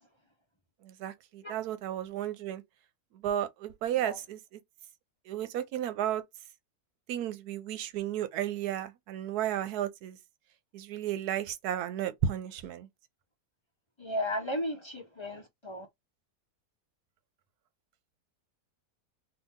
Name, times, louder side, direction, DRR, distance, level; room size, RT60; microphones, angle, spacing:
voice 1, 0.8-2.6 3.2-4.6 5.3-6.2 7.1-10.2 10.7-12.9, right 10 dB, 80° right, 1.1 m, -33 dB
voice 2, 14.0-15.9, left 1 dB, 40° left, 0.4 m, -35 dB
2.8 x 2.6 x 3.6 m
omnidirectional pair, 1.6 m